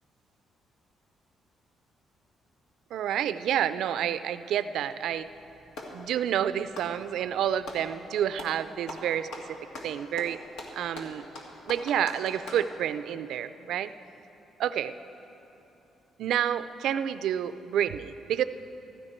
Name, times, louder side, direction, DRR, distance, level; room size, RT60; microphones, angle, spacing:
voice 1, 2.9-5.3 5.9-9.6 9.8-10.4 10.7-11.3 11.7-13.9 14.6-14.9 16.2-18.4, right 10 dB, 80° right, 13 dB, 0.4 m, -29 dB
Clapping, 5.1-6.0 6.6-7.9 8.3-8.6 8.9-12.7, left 1 dB, 85° left, 1.8 m, -42 dB
15.5 x 14.0 x 4.4 m, 3.0 s
cardioid pair, 90°, 0 cm